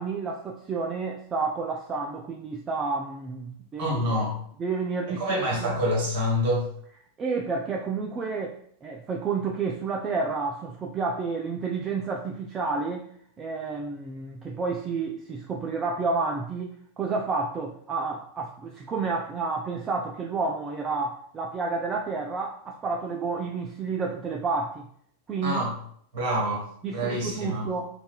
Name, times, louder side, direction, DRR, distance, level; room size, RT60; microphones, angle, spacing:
voice 1, 0.0-4.2 4.6-5.7 7.2-8.5 8.8-13.0 13.4-24.9 25.3-25.6 26.8-27.9, right 4 dB, 25° right, 1 dB, 0.3 m, -30 dB
voice 2, 3.8-4.3 5.2-6.7 25.4-25.7 26.1-27.7, equal, 50° right, -2 dB, 1.4 m, -27 dB
4.0 x 2.4 x 2.2 m, 0.64 s
figure-of-eight pair, 90°, 0 cm